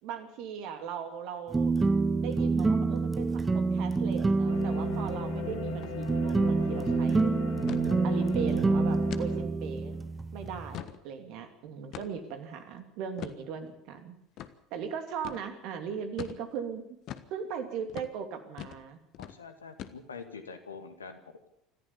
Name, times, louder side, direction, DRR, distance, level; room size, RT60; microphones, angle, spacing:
voice 1, 0.0-1.7 2.2-7.3 8.0-9.9 10.3-14.2 14.7-16.8 17.3-19.0, right 7 dB, 50° right, 7 dB, 2.7 m, -38 dB
sound 1, 1.5-10.8, right 3 dB, 15° right, 1.1 m, -27 dB
sound 2, 4.5-9.4, left 5 dB, 60° left, 2.4 m, -38 dB
sound 3, 5.7-5.9 6.2-6.3 6.7-7.0 7.7-7.9 8.4-8.5 9.1-9.3 9.8-9.9 10.5-11.0 11.9-12.3 13.2-13.4 14.4-14.5 15.2-15.4 16.2-16.4 17.1-17.3 17.9-18.1 18.6-18.8 19.1-19.4 19.8-20.2, left 11 dB, 45° left, 1.3 m, -42 dB
voice 2, 19.2-21.5, left 5 dB, 75° left, 8 dB, 2.0 m, -45 dB
25.5 x 14.5 x 7.1 m, 0.76 s
figure-of-eight pair, 70°, 0 cm